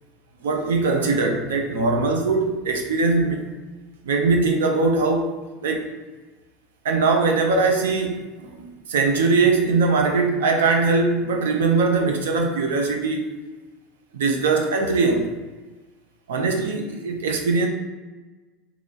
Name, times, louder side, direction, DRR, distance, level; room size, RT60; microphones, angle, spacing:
voice 1, 0.4-3.4 4.0-5.3 5.6-5.9 6.8-13.3 14.1-15.3 16.3-17.7, right 3 dB, 85° right, 4 dB, 0.5 m, -21 dB
3.0 x 2.4 x 3.8 m, 1.2 s
hypercardioid pair, 95°, 0 cm